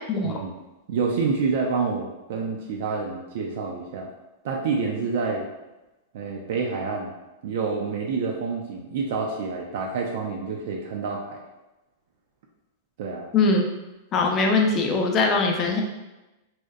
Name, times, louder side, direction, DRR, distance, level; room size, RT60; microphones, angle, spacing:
voice 1, 0.2-0.5 0.9-4.1 4.4-5.4 6.1-7.1 7.4-11.4 13.0-13.3, right 4 dB, 65° right, 0 dB, 0.3 m, -28 dB
voice 2, 13.3-13.7 14.1-15.8, left 3 dB, 35° left, 2 dB, 0.4 m, -21 dB
2.8 x 2.0 x 2.3 m, 1.0 s
hypercardioid pair, 125°, 0 cm